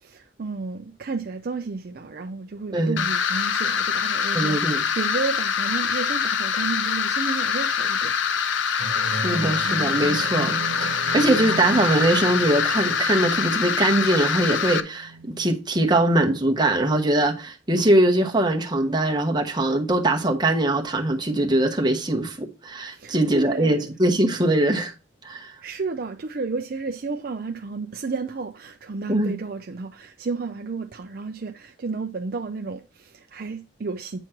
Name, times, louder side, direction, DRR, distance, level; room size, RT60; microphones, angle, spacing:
voice 1, 0.0-8.2 22.9-23.9 25.6-34.2, right 4 dB, 45° right, 0.4 m, -32 dB
sound 1, 3.0-14.8, left 7 dB, 70° left, 0.5 m, -24 dB
voice 2, 4.3-4.8 9.0-24.9 25.2-25.5 29.1-29.3, right 1 dB, 20° right, 1.0 m, -22 dB
sound 2, 8.8-15.6, right 3 dB, 85° right, 1.0 m, -35 dB
8.9 x 3.1 x 5.8 m
head